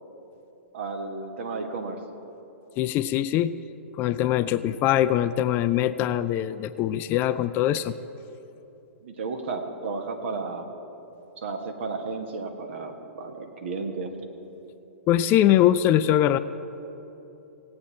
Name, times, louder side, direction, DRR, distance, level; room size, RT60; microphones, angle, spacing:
voice 1, 0.7-2.0 9.0-10.7 11.4-14.1, right 4 dB, 60° right, 5 dB, 1.4 m, -33 dB
voice 2, 2.8-3.5 3.9-7.9 15.1-16.4, left 12 dB, 30° left, 14 dB, 0.3 m, -22 dB
17.5 x 8.7 x 4.4 m, 3.0 s
hypercardioid pair, 115°, 7 cm